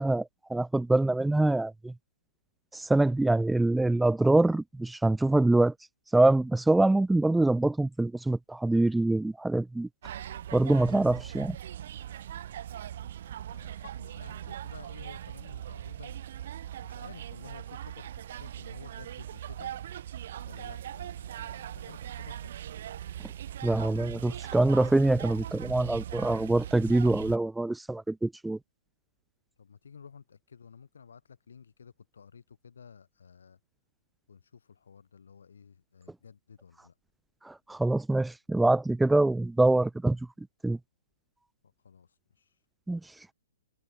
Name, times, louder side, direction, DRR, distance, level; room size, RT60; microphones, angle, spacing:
voice 1, 0.0-1.9 2.7-5.7 6.1-9.9 10.5-11.6 23.6-28.6 37.5-40.2 40.6-40.8 42.9-43.0, right 2 dB, 5° right, 0.3 m, -25 dB
sound 1, 10.0-27.4, right 11 dB, 55° right, 4.0 m, -40 dB
voice 2, 13.5-16.2 16.8-19.7 20.4-22.5 29.6-33.6 34.3-36.9 41.8-42.1 42.4-42.5, left 6 dB, 70° left, 8.0 m, -52 dB
figure-of-eight pair, 125°, 0 cm